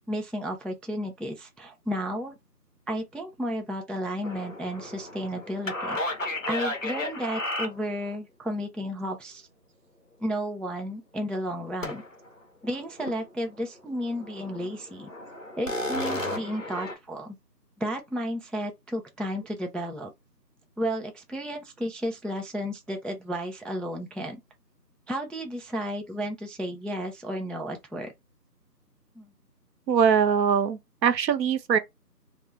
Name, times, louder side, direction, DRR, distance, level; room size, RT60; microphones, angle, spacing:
voice 1, 0.1-2.3 2.9-6.0 6.5-9.5 10.2-12.0 12.6-15.1 15.6-17.4 17.8-20.1 20.8-24.4 25.1-28.1 29.2-29.3, equal, ahead, 0.3 m, -33 dB
sound 1, 4.2-8.1 11.8-12.3 12.6-13.3 13.6-13.7 14.1-17.0, left 1 dB, 50° left, 0.7 m, -33 dB
voice 2, 29.9-31.8, right 7 dB, 85° right, 0.6 m, -22 dB
2.2 x 2.0 x 3.0 m
figure-of-eight pair, 180°, 50 cm